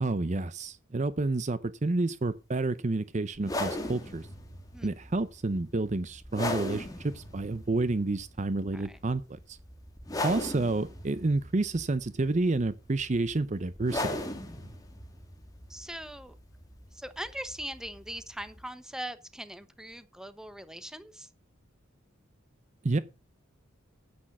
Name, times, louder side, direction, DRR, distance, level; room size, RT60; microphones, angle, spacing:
voice 1, 0.0-4.3 4.8-9.6 10.2-14.2 22.8-23.0, right 2 dB, 35° right, 0.6 m, -29 dB
sound 1, 3.4-18.7, left 1 dB, 20° left, 2.0 m, -39 dB
voice 2, 15.7-16.4 16.9-21.3, right 1 dB, 5° right, 1.0 m, -41 dB
9.9 x 8.8 x 6.0 m
head